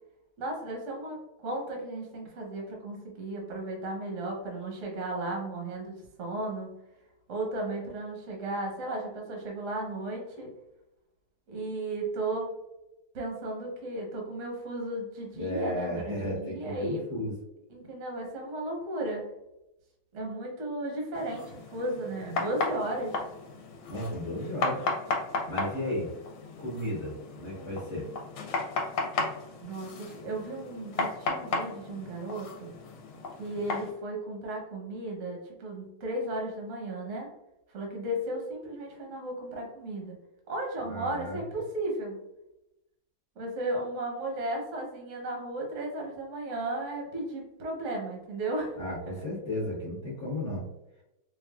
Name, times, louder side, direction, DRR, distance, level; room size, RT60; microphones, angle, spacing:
voice 1, 0.4-6.7 7.3-10.5 11.5-12.5 13.1-17.1 17.7-19.3 20.1-23.2 29.6-32.7 33.4-37.3 37.7-40.2 40.5-42.2 43.4-48.8, right 1 dB, 50° right, 0 dB, 0.9 m, -35 dB
voice 2, 15.3-17.3 23.9-24.9 25.5-26.1 26.6-28.1 40.9-41.4 48.7-50.6, left 1 dB, 45° left, -6 dB, 1.1 m, -34 dB
sound 1, 21.1-33.9, left 3 dB, 75° left, 1.4 m, -35 dB
4.4 x 2.4 x 2.3 m, 0.89 s
omnidirectional pair, 2.3 m